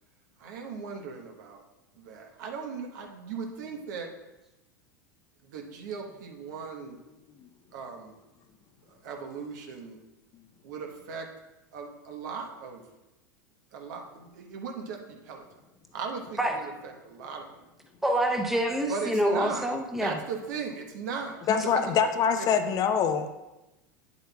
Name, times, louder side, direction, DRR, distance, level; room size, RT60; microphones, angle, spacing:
voice 1, 0.4-1.6 1.9-4.1 5.4-7.0 7.7-8.1 8.9-10.0 10.6-11.3 11.7-12.8 13.7-15.4 15.9-17.5 18.9-19.7 20.0-21.4 21.7-22.0 22.4-22.5, right 5 dB, 65° right, 2 dB, 1.1 m, -38 dB
voice 2, 18.0-20.2, right 1 dB, 5° right, 2 dB, 0.9 m, -26 dB
voice 3, 21.5-23.3, left 7 dB, 35° left, 8 dB, 0.6 m, -24 dB
9.2 x 7.8 x 2.3 m, 0.99 s
hypercardioid pair, 90°, 10 cm